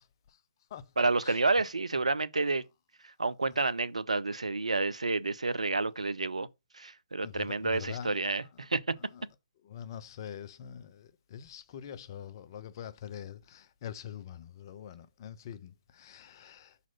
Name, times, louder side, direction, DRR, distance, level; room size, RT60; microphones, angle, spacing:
voice 1, 1.0-2.6 3.2-6.5 6.7-8.8, right 3 dB, 80° right, 0.6 m, -29 dB
voice 2, 7.2-8.2 9.7-16.7, left 9 dB, 40° left, 0.6 m, -44 dB
6.0 x 4.1 x 5.5 m
figure-of-eight pair, 135°, 3 cm